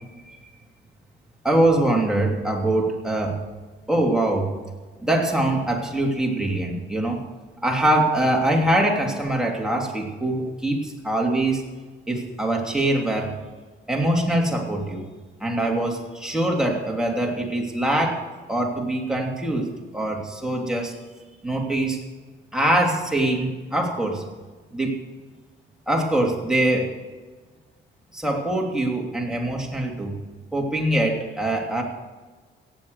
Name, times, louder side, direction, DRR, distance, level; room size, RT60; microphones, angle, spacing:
voice 1, 1.4-3.4 3.9-4.5 5.0-7.2 7.6-11.6 12.1-13.3 13.9-15.0 15.4-18.2 18.5-20.9 21.4-22.0 22.5-24.2 24.7-24.9 25.9-26.9 28.1-30.2 30.5-31.8, right 1 dB, 5° right, -1 dB, 3.0 m, -23 dB
17.5 x 7.6 x 6.6 m, 1.3 s
cardioid pair, 90°, 20 cm